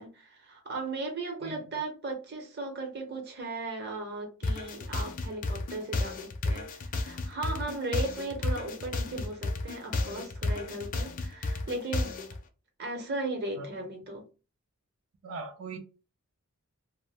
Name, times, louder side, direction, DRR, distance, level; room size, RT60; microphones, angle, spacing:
voice 1, 0.0-12.1 12.8-14.3, right 2 dB, 50° right, 0.8 m, -37 dB
sound 1, 4.4-12.4, left 2 dB, 40° left, 0.4 m, -32 dB
voice 2, 15.2-15.8, right 4 dB, 65° right, 0.5 m, -40 dB
2.5 x 2.1 x 3.4 m
head